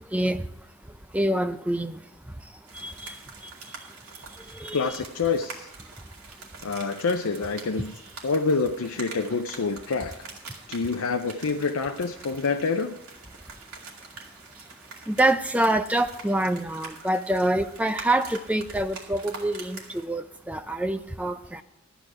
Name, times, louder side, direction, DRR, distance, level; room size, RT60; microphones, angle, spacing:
voice 1, 0.1-0.4 1.1-2.0 2.7-3.1 4.6-4.9 15.1-21.6, right 1 dB, 5° right, 8 dB, 0.5 m, -26 dB
sound 1, 2.7-20.1, right 4 dB, 80° right, 2.4 m, -45 dB
voice 2, 4.7-5.7 6.6-7.9 8.2-10.3 10.7-13.0, left 4 dB, 75° left, 5 dB, 0.6 m, -27 dB
13.0 x 9.2 x 4.8 m, 0.82 s
head